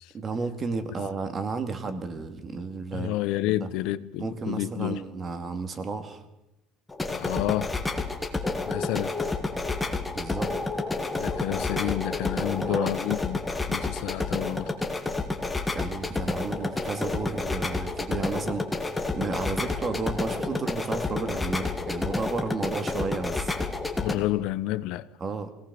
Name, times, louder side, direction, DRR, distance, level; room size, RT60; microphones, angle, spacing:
voice 1, 0.1-3.1 3.5-3.7 4.2-6.2 10.1-10.5 12.5-12.9 15.7-18.9 19.1-23.7 25.2-25.5, right 4 dB, 25° right, 2.1 m, -33 dB
voice 2, 2.9-5.0 7.1-7.7 8.7-9.2 11.1-13.4 13.7-14.7 24.0-25.1, left 15 dB, 65° left, 0.9 m, -29 dB
sound 1, 6.9-24.2, left 3 dB, 10° left, 1.8 m, -30 dB
23.0 x 18.0 x 6.9 m
cardioid pair, 160°, 0 cm